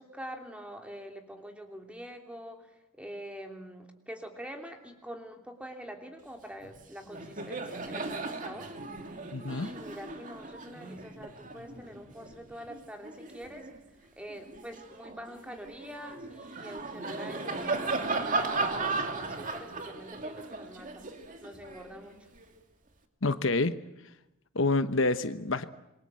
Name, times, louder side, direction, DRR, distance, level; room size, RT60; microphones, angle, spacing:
voice 1, 0.0-9.1 9.4-13.7 14.0-21.0 21.4-22.2, equal, 5° right, 4 dB, 3.1 m, -45 dB
Laughter, 6.6-6.8 7.1-13.8 14.3-22.5, right 3 dB, 40° right, 2.5 m, -36 dB
voice 2, 9.3-9.7 23.2-23.7 24.5-25.6, left 3 dB, 65° left, 11 dB, 1.0 m, -27 dB
27.5 x 23.0 x 7.7 m, 0.93 s
head